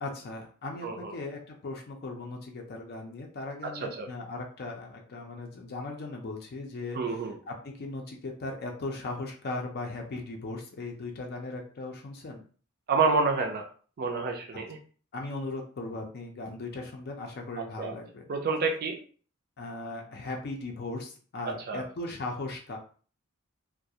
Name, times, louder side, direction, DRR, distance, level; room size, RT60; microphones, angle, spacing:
voice 1, 0.0-7.0 7.5-12.4 15.1-18.2 19.6-22.8, left 2 dB, 45° left, 1 dB, 0.4 m, -38 dB
voice 2, 0.8-1.1 3.6-4.1 6.9-7.4 12.9-13.7 14.0-14.8 17.6-18.0 18.3-19.0 21.4-21.8, right 4 dB, 45° right, 3 dB, 0.4 m, -29 dB
2.3 x 2.1 x 2.7 m, 0.41 s
head